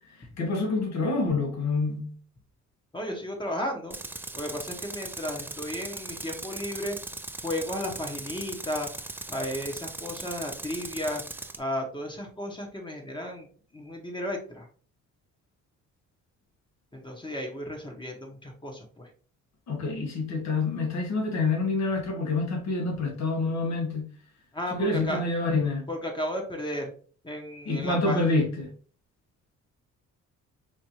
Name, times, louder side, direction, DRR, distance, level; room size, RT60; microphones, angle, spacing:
voice 1, 0.4-2.1 19.7-24.1 24.7-25.9 27.7-28.7, left 3 dB, 65° left, 1.3 m, -27 dB
voice 2, 2.9-4.0 4.3-7.0 7.4-11.2 11.6-13.5 13.7-14.7 16.9-19.1 24.5-25.2 25.9-26.9 27.2-28.2, equal, 15° left, 1.0 m, -34 dB
Tools, 3.9-11.6, right 2 dB, 5° right, 0.3 m, -39 dB
4.3 x 2.6 x 3.0 m
cardioid pair, 90°, 30 cm